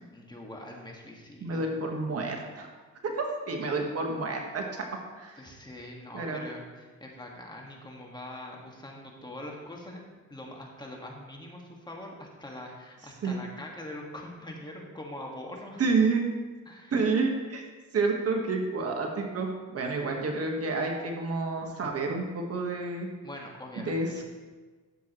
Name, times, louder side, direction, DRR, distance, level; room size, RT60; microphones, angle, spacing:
voice 1, 0.1-1.6 5.4-15.8 16.7-16.9 23.2-24.2, left 1 dB, 15° left, -1 dB, 1.8 m, -43 dB
voice 2, 1.4-2.7 3.0-4.9 5.1-5.4 6.1-6.4 13.2-13.4 15.8-16.2 16.9-17.6 17.9-23.1 23.8-24.2, right 3 dB, 50° right, 2 dB, 1.5 m, -29 dB
12.5 x 7.5 x 3.1 m, 1.3 s
cardioid pair, 90°, 30 cm